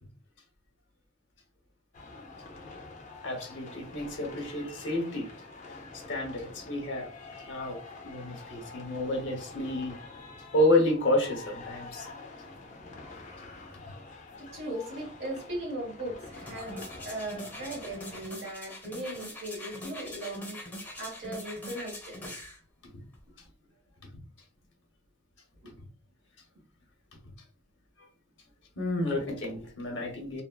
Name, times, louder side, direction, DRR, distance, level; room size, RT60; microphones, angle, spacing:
sound 1, 1.9-18.2, left 3 dB, 40° left, 0.6 m, -47 dB
voice 1, 3.2-5.3 5.9-7.8 8.0-10.0 10.5-12.1 22.9-23.0 28.8-30.4, left 1 dB, 70° left, 0.9 m, -30 dB
voice 2, 14.4-20.6 21.0-22.2 25.6-25.7, right 1 dB, 60° right, 1.4 m, -38 dB
sound 2, 16.3-22.6 23.1-23.2, left 1 dB, 10° left, 0.8 m, -43 dB
3.3 x 2.0 x 2.2 m
head